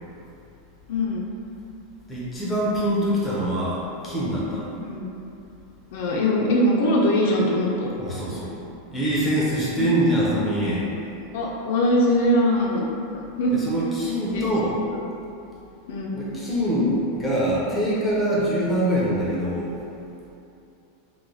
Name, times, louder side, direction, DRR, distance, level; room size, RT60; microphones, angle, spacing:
voice 1, 0.9-1.3 4.8-5.1 5.9-7.9 9.8-9.9 11.3-12.9 13.4-13.6 14.3-14.5 14.9-15.0 15.9-16.2, left 1 dB, 55° left, -2 dB, 0.4 m, -22 dB
voice 2, 2.1-4.7 8.0-8.6 8.9-10.9 13.5-14.8 16.1-19.7, equal, 5° left, -8 dB, 0.6 m, -24 dB
3.1 x 2.1 x 3.8 m, 2.7 s
supercardioid pair, 180°, 0 cm